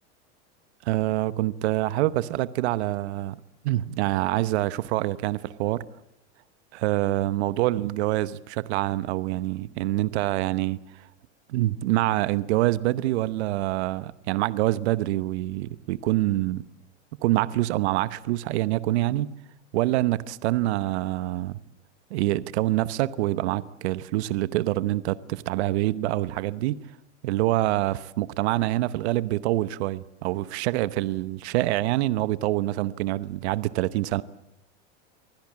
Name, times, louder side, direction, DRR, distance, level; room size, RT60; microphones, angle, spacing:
voice 1, 0.8-3.4 3.6-5.8 6.7-10.8 11.5-16.6 17.2-19.3 19.7-21.6 22.1-26.8 27.2-34.2, right 16 dB, 70° right, 1.0 m, -26 dB
24.5 x 16.5 x 8.6 m
hypercardioid pair, 115°, 35 cm